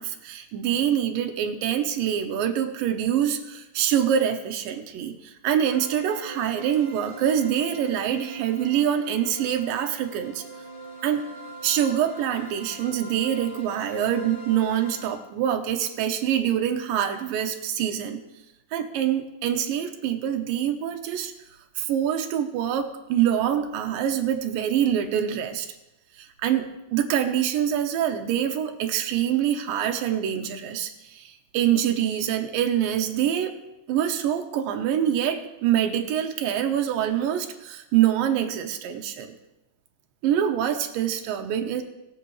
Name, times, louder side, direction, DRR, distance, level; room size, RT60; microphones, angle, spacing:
voice 1, 0.0-10.4 11.0-11.3 11.6-18.2 18.7-21.3 21.8-25.7 26.2-33.6 33.9-39.3 40.2-41.8, right 10 dB, 85° right, 5 dB, 2.6 m, -25 dB
sound 1, 5.7-15.1, right 2 dB, 60° left, 4.0 m, -42 dB
21.5 x 7.8 x 3.1 m, 0.95 s
omnidirectional pair, 4.0 m